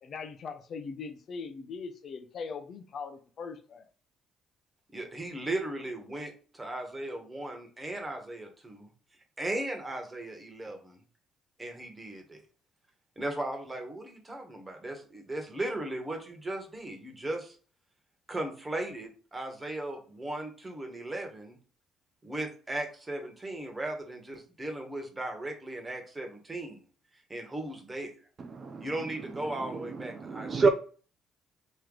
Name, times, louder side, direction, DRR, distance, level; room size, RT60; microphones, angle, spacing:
voice 1, 0.0-3.9, left 5 dB, 55° left, 0.6 m, -40 dB
voice 2, 4.9-8.9 9.4-11.0 11.6-12.4 13.2-17.5 18.3-21.6 22.2-26.8 27.3-28.1 28.8-30.7, right 1 dB, 20° right, 1.4 m, -37 dB
voice 3, 28.4-30.7, right 4 dB, 45° right, 0.5 m, -30 dB
3.1 x 2.9 x 3.9 m
supercardioid pair, 65°, 0 cm